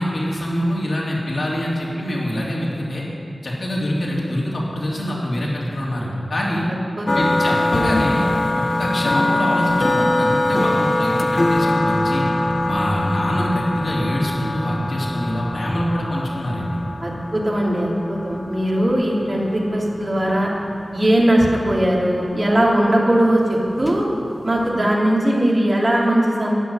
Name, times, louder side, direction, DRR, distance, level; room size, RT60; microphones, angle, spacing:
voice 1, 0.0-3.0 3.4-6.7 7.1-8.3 8.5-12.3 12.6-16.8, equal, 70° left, -5 dB, 3.2 m, -24 dB
sound 1, 7.1-24.9, left 1 dB, 45° left, 0.9 m, -23 dB
voice 2, 17.0-20.5 20.9-24.0 24.4-26.6, right 1 dB, 45° right, -4 dB, 3.0 m, -19 dB
13.0 x 7.2 x 10.0 m, 2.5 s
wide cardioid pair, 70°, 0 cm